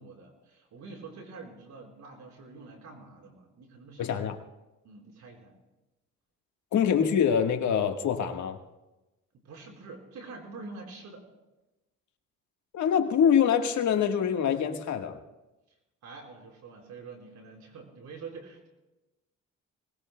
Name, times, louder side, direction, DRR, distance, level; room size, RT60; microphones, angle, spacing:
voice 1, 0.0-4.2 4.8-5.5 9.4-11.2 16.0-18.7, right 4 dB, 70° right, 0 dB, 4.5 m, -46 dB
voice 2, 4.0-4.4 6.7-8.6 12.7-15.2, left 8 dB, 70° left, 4 dB, 1.5 m, -25 dB
27.0 x 20.0 x 2.2 m, 1.0 s
cardioid pair, 90°, 30 cm